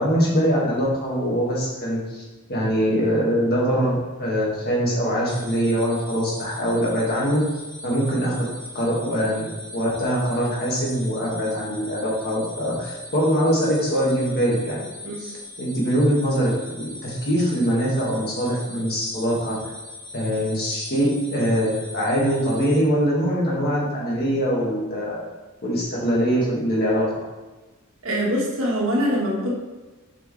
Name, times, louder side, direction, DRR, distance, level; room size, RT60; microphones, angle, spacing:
voice 1, 0.0-2.2 2.5-7.4 7.8-8.5 8.7-9.5 9.7-14.9 15.2-19.5 20.1-25.2 25.6-27.1, equal, 50° left, -4 dB, 1.9 m, -23 dB
sound 1, 5.3-22.8, left 2 dB, 10° left, 1.1 m, -40 dB
voice 2, 28.0-29.5, equal, 85° right, -3 dB, 1.7 m, -23 dB
7.0 x 5.1 x 3.3 m, 1.2 s
head